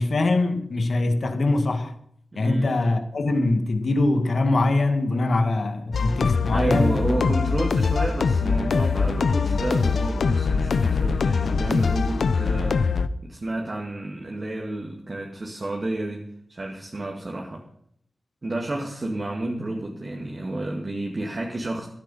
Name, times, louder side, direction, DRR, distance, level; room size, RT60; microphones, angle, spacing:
voice 1, 0.0-1.9 2.4-7.0, left 2 dB, 65° left, 1.9 m, -23 dB
voice 2, 2.3-2.7 6.5-12.9 13.2-17.6 18.4-21.9, right 1 dB, 40° right, 2.2 m, -30 dB
sound 1, 5.9-13.1, left 4 dB, 85° left, 0.8 m, -22 dB
15.0 x 12.5 x 5.7 m
wide cardioid pair, 90°, 0 cm